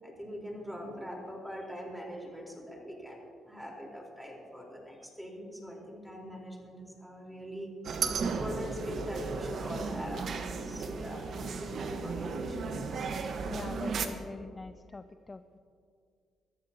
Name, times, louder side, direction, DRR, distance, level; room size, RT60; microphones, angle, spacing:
voice 1, 0.0-7.7 8.2-10.3 10.6-12.8, equal, 5° right, -1 dB, 4.1 m, -42 dB
sound 1, 7.8-14.1, right 5 dB, 60° right, 1.2 m, -35 dB
voice 2, 13.4-15.6, left 3 dB, 25° left, 10 dB, 0.4 m, -44 dB
23.5 x 14.5 x 2.9 m, 2.3 s
cardioid pair, 90°, 0 cm